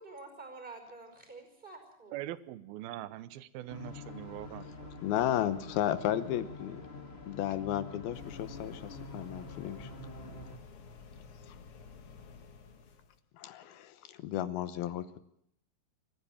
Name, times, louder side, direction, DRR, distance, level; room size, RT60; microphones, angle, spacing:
voice 1, 0.0-2.2, right 3 dB, 10° right, 6 dB, 5.1 m, -48 dB
voice 2, 2.1-4.9, right 14 dB, 75° right, 16 dB, 2.6 m, -42 dB
sound 1, 3.7-10.6, left 3 dB, 25° left, 1.5 m, -46 dB
voice 3, 5.0-6.8 7.3-9.9 11.5-11.6 13.3-15.2, left 11 dB, 75° left, 13 dB, 2.7 m, -34 dB
sound 2, 8.1-13.2, left 5 dB, 50° left, 1.8 m, -52 dB
25.5 x 15.0 x 7.0 m, 0.70 s
omnidirectional pair, 4.8 m